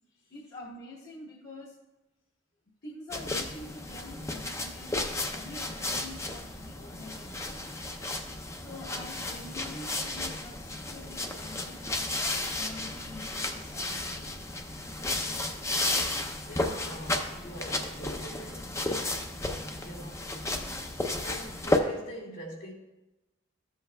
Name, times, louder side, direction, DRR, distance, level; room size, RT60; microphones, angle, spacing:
voice 1, 0.3-1.8 2.8-5.0 5.4-7.8 8.5-14.3, left 2 dB, 50° left, -5 dB, 1.1 m, -46 dB
sound 1, 3.1-21.8, left 2 dB, 15° left, 0.5 m, -33 dB
voice 2, 16.5-19.3 19.8-20.2 21.2-22.7, equal, 80° left, -2 dB, 2.4 m, -44 dB
14.0 x 7.8 x 2.2 m, 0.99 s
head